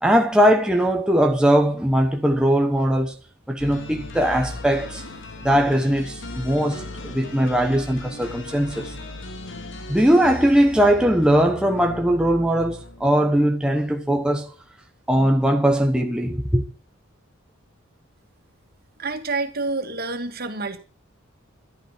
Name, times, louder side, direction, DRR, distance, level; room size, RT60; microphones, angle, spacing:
voice 1, 0.0-3.1 3.5-5.0 5.4-8.9 9.9-14.5 15.1-16.6, equal, 5° right, 1.1 m, -20 dB
sound 1, 3.6-13.4, left 2 dB, 60° left, 2.3 m, -37 dB
voice 2, 19.0-20.8, right 3 dB, 45° right, 2.4 m, -28 dB
14.0 x 12.0 x 6.1 m
head